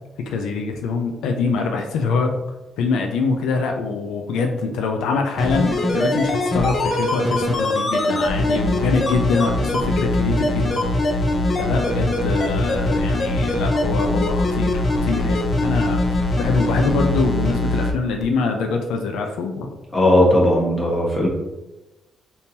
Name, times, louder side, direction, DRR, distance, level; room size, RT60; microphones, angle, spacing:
voice 1, 0.3-2.4 2.8-10.8 11.6-19.7, left 4 dB, 85° left, 3 dB, 0.4 m, -24 dB
sound 1, 5.4-17.9 18.2-18.3, left 1 dB, 40° left, 0.6 m, -21 dB
voice 2, 19.9-21.3, left 1 dB, 20° left, -3 dB, 1.3 m, -17 dB
3.6 x 2.7 x 2.8 m, 1.0 s
cardioid pair, 90°, 0 cm